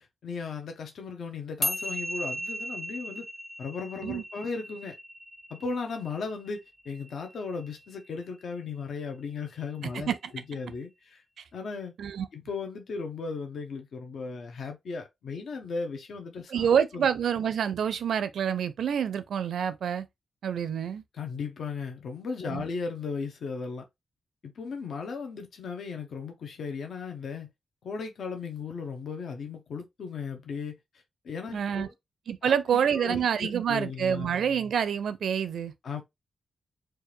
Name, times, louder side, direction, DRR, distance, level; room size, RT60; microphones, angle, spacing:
voice 1, 0.0-3.3 3.6-5.0 5.5-11.2 11.5-11.9 12.3-17.1 21.1-23.8 24.4-27.5 27.8-30.8 31.2-31.9 32.4-34.3 35.8-36.0, left 5 dB, 70° left, 0.8 m, -36 dB
sound 1, 1.6-8.2, left 1 dB, 20° left, 0.7 m, -37 dB
voice 2, 16.5-20.1 20.4-21.0 22.5-22.6 31.5-31.9 32.3-35.7, right 8 dB, 85° right, 0.5 m, -27 dB
4.4 x 2.5 x 3.2 m
wide cardioid pair, 140°, 0 cm